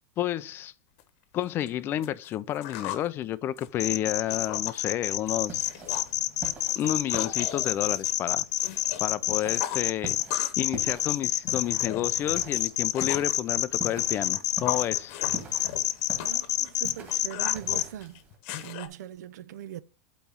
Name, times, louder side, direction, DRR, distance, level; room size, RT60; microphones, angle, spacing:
voice 1, 0.2-0.7 1.3-5.7 6.8-8.4 9.0-10.2 10.6-15.2, left 12 dB, 25° left, 0.4 m, -30 dB
sound 1, 1.0-1.1 1.4-3.1 3.4-4.8 5.1-5.3 5.6-6.1 6.4-9.0 9.3-10.7 11.0-13.4 13.9-18.9, left 11 dB, 50° left, 1.0 m, -38 dB
sound 2, 3.8-17.8, left 13 dB, 90° left, 0.7 m, -27 dB
sound 3, 5.3-18.4, right 4 dB, 20° right, 1.9 m, -45 dB
voice 2, 16.2-18.1 18.6-19.8, right 11 dB, 85° right, 0.5 m, -41 dB
8.5 x 3.1 x 5.4 m
supercardioid pair, 160°, 9 cm